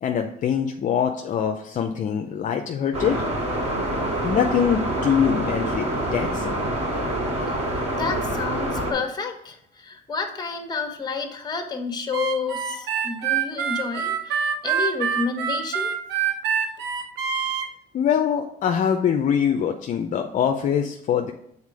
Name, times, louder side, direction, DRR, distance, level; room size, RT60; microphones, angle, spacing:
voice 1, 0.0-3.3 4.2-6.6 17.9-21.3, left 8 dB, 50° left, 4 dB, 0.6 m, -23 dB
sound 1, 2.9-8.9, right 1 dB, 35° right, 3.2 m, -26 dB
voice 2, 7.9-15.9, left 4 dB, 25° left, 5 dB, 1.3 m, -30 dB
Harmonica, 12.1-17.7, right 7 dB, 80° right, 1.0 m, -25 dB
7.3 x 4.1 x 4.8 m, 0.71 s
cardioid pair, 110°, 17 cm